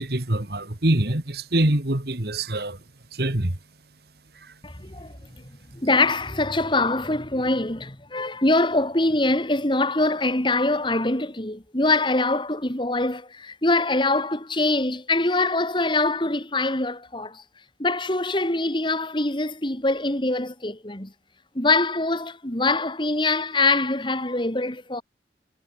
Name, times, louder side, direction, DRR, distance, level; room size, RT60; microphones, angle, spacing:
voice 1, 0.0-2.8 3.1-3.6 4.4-4.5, right 1 dB, 60° right, 2.2 m, -24 dB
voice 2, 4.6-5.1 5.7-17.4 17.8-21.1 21.5-25.0, left 2 dB, 25° left, 2.6 m, -23 dB
head